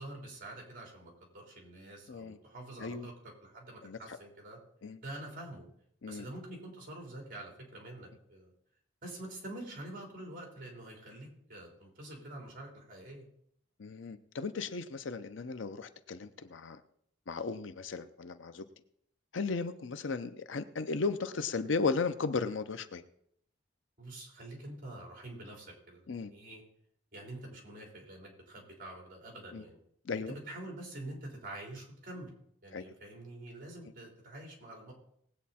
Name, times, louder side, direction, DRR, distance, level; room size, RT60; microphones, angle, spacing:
voice 1, 0.0-4.6 5.0-5.7 6.1-8.5 9.0-13.2 24.0-26.0 26.3-26.6 27.1-29.8 30.3-32.3 32.6-34.9, right 1 dB, 45° right, 0 dB, 3.8 m, -46 dB
voice 2, 3.8-4.2 4.8-5.0 6.0-6.3 13.8-16.8 17.3-18.6 19.3-23.0 26.1-26.3 29.5-29.6 30.1-30.3 32.7-32.9, left 4 dB, 75° left, 11 dB, 0.7 m, -35 dB
19.0 x 8.4 x 4.3 m, 0.70 s
head